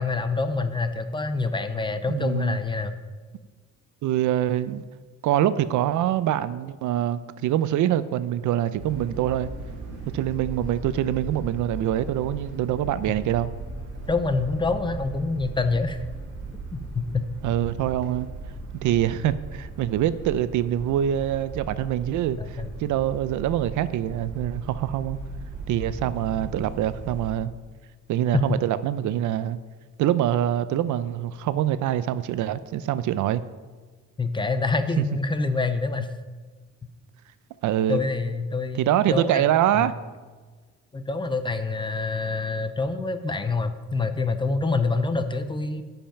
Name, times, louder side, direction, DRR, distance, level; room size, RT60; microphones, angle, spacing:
voice 1, 0.0-3.0 14.1-16.0 16.7-17.2 22.4-22.7 28.3-28.4 34.2-36.1 37.9-39.4 39.8-39.9 40.9-45.8, left 3 dB, 15° left, 9 dB, 0.4 m, -26 dB
voice 2, 2.1-2.6 4.0-4.8 5.2-9.5 10.1-13.5 17.4-18.3 18.8-25.2 25.7-27.5 28.1-29.6 30.0-33.4 35.0-35.1 37.6-38.0 38.7-39.9, right 11 dB, 80° right, 14 dB, 0.5 m, -24 dB
sound 1, 8.8-27.3, right 3 dB, 55° right, 2.5 m, -37 dB
10.0 x 5.4 x 5.8 m, 1.4 s
cardioid pair, 170°, 30 cm